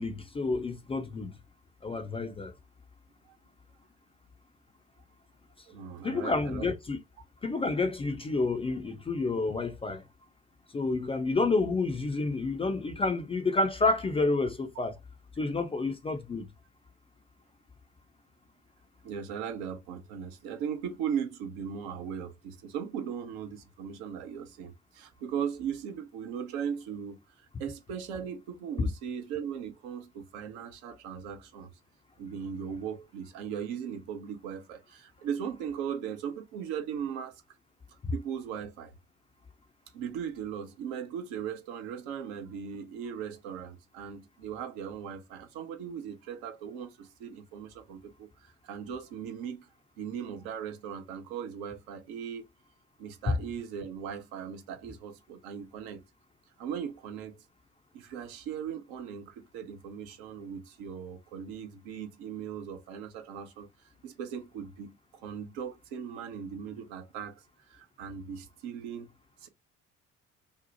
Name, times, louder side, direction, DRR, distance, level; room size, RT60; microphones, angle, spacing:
voice 1, 0.0-1.3 1.8-2.5 6.0-7.0 7.4-10.0 10.7-15.0 15.4-16.5 38.0-38.1 53.3-53.4, left 3 dB, 15° left, 0.4 m, -29 dB
voice 2, 5.7-6.7 19.0-27.2 27.6-31.7 32.2-37.4 38.1-38.9 39.9-49.7 50.0-52.5 53.0-56.0 56.6-57.4 57.9-63.7 64.0-65.0 65.2-69.1 69.4-69.5, right 8 dB, 60° right, 0.7 m, -38 dB
2.7 x 2.0 x 2.7 m
figure-of-eight pair, 50°, 37 cm